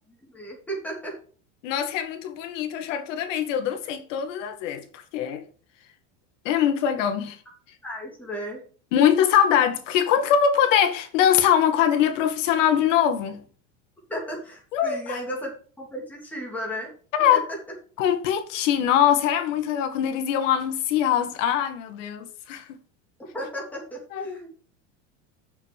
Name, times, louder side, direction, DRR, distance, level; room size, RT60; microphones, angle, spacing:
voice 1, 0.3-1.2 7.8-8.7 14.1-15.5 15.8-16.9 17.2-17.4 23.2-24.5, equal, 5° left, 3.2 m, -34 dB
voice 2, 1.6-5.5 6.4-7.4 8.9-13.4 14.7-15.2 17.1-17.4 18.0-22.8 24.1-24.4, left 9 dB, 70° left, 2.0 m, -22 dB
7.0 x 6.6 x 7.3 m
supercardioid pair, 145°, 38 cm